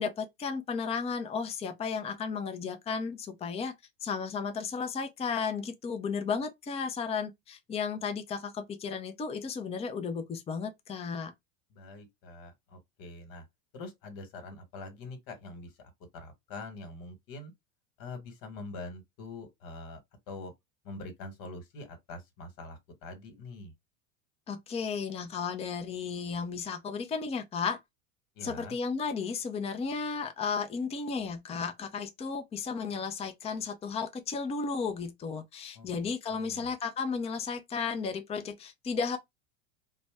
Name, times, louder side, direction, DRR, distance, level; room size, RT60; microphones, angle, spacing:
voice 1, 0.0-3.7 4.0-11.3 24.5-27.8 28.4-39.2, left 5 dB, 15° left, 0.5 m, -34 dB
voice 2, 11.7-13.4 13.7-17.5 18.0-20.0 20.3-20.5 20.8-23.7 28.3-28.7 35.7-36.7, left 2 dB, 55° left, 1.4 m, -44 dB
2.5 x 2.2 x 3.3 m
hypercardioid pair, 90°, 41 cm